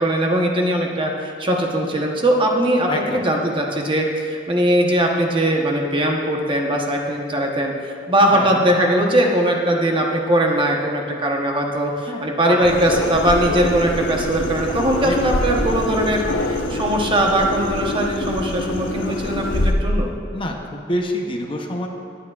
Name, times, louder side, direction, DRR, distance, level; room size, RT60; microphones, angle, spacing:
voice 1, 0.0-20.1, right 1 dB, 25° right, 0 dB, 1.0 m, -20 dB
voice 2, 2.9-3.2 8.3-8.6 12.0-12.8 14.7-15.7 20.3-21.9, left 1 dB, 25° left, 2 dB, 0.8 m, -28 dB
sound 1, 12.6-19.7, left 1 dB, 75° left, 0.9 m, -25 dB
19.5 x 8.9 x 2.4 m, 2.4 s
head